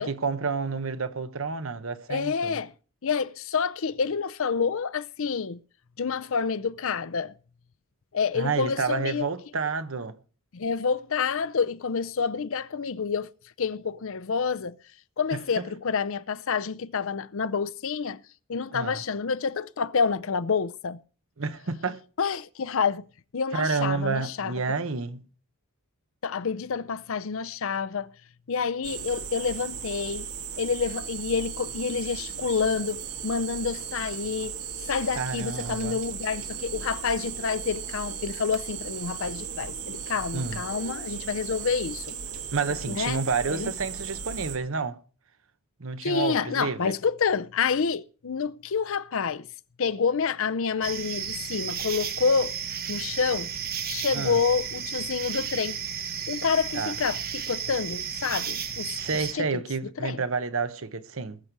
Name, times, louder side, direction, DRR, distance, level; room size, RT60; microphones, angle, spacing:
voice 1, 0.0-2.6 8.3-10.2 15.3-15.7 18.7-19.0 21.4-22.0 23.5-25.2 35.2-36.0 40.3-40.6 42.5-45.0 45.8-46.9 54.1-54.4 56.7-56.9 59.0-61.4, right 4 dB, 65° right, 1.0 m, -30 dB
voice 2, 2.1-2.7 3.0-5.6 6.0-7.3 8.1-9.2 10.5-13.3 13.6-14.8 15.2-18.2 18.5-21.0 22.2-23.1 23.3-24.5 26.2-28.1 28.5-30.3 30.6-34.6 34.8-42.2 42.9-43.2 43.5-43.7 46.0-49.5 49.8-52.5 52.9-53.5 53.8-55.8 56.3-59.0 59.3-60.2, left 5 dB, 60° left, 0.6 m, -28 dB
sound 1, 28.8-44.6, right 7 dB, 80° right, 1.9 m, -36 dB
sound 2, 50.8-59.3, right 8 dB, 45° right, 1.2 m, -33 dB
20.5 x 6.8 x 4.7 m
head